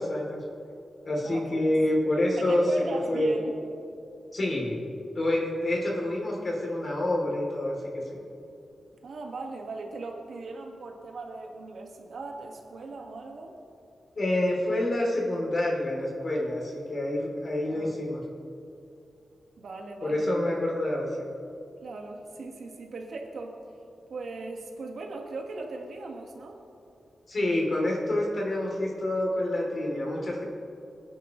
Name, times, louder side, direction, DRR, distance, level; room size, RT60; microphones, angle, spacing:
voice 1, 0.1-0.4 1.0-2.6 3.1-3.3 4.3-4.8 5.1-7.8 8.1-8.2 14.1-18.2 20.0-21.3 27.3-30.4, left 1 dB, 40° left, -2 dB, 3.0 m, -27 dB
voice 2, 1.2-1.6 2.4-3.6 9.0-13.5 17.6-18.0 19.6-20.3 21.8-23.6 24.1-26.6, right 3 dB, 75° right, 1 dB, 1.7 m, -38 dB
25.0 x 9.9 x 3.1 m, 2.6 s
wide cardioid pair, 145°, 0 cm